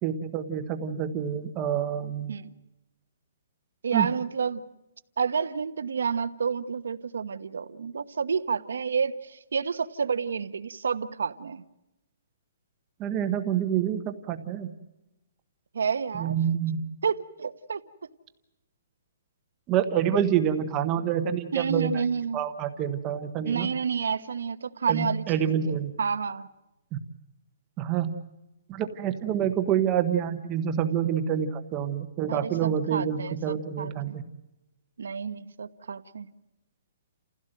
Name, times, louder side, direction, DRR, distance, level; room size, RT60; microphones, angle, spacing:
voice 1, 0.0-2.3 3.9-4.1 13.0-14.7 16.2-16.8 19.7-22.0 22.3-23.7 24.9-25.9 27.8-28.1 28.7-34.2, right 9 dB, 15° right, 8 dB, 1.1 m, -27 dB
voice 2, 3.8-4.6 5.2-11.6 15.7-16.4 17.0-17.8 21.5-22.4 23.4-26.5 32.3-34.1 35.0-36.3, right 6 dB, 80° right, 12 dB, 1.2 m, -30 dB
29.5 x 16.5 x 7.7 m, 0.98 s
hypercardioid pair, 180°, 0 cm